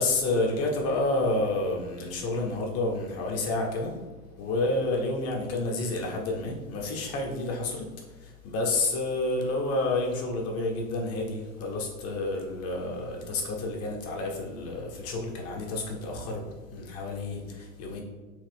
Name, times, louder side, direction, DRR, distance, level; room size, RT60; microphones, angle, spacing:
voice 1, 0.0-4.0 4.4-18.0, left 2 dB, 35° left, 0 dB, 0.8 m, -29 dB
3.2 x 2.3 x 3.4 m, 1.3 s
hypercardioid pair, 90°, 43 cm